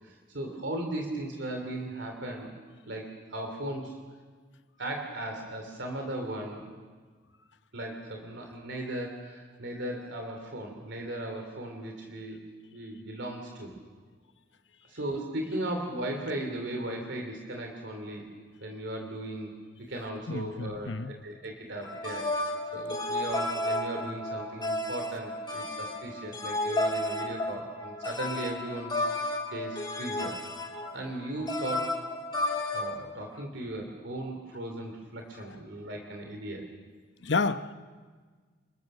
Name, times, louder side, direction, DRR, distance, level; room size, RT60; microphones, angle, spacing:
voice 1, 0.0-2.5 2.8-3.9 4.8-6.7 7.7-12.4 12.7-13.7 14.9-18.2 18.6-29.1 29.5-30.4 30.9-32.0 32.7-36.6, right 1 dB, 70° right, 2 dB, 3.0 m, -37 dB
voice 2, 20.3-21.1 22.7-22.8 37.2-37.7, left 4 dB, 65° left, 11 dB, 0.9 m, -30 dB
sound 1, 21.8-32.9, left 1 dB, 20° left, 2.8 m, -32 dB
28.5 x 22.5 x 6.6 m, 1.5 s
head